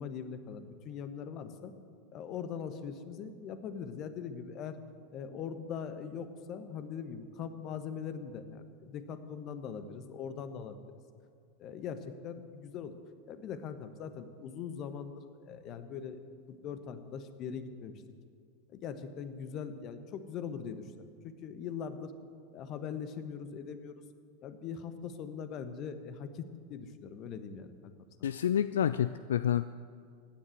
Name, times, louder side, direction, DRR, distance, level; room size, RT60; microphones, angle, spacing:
voice 1, 0.0-1.7 2.1-4.8 5.1-10.8 11.6-12.9 13.3-16.2 16.5-17.9 18.7-20.8 21.2-22.1 22.5-24.0 24.4-27.9 28.2-28.3, left 7 dB, 40° left, 10 dB, 1.2 m, -41 dB
voice 2, 28.2-29.6, left 10 dB, 70° left, 14 dB, 0.3 m, -28 dB
16.0 x 10.0 x 7.8 m, 2.2 s
figure-of-eight pair, 90°, 0 cm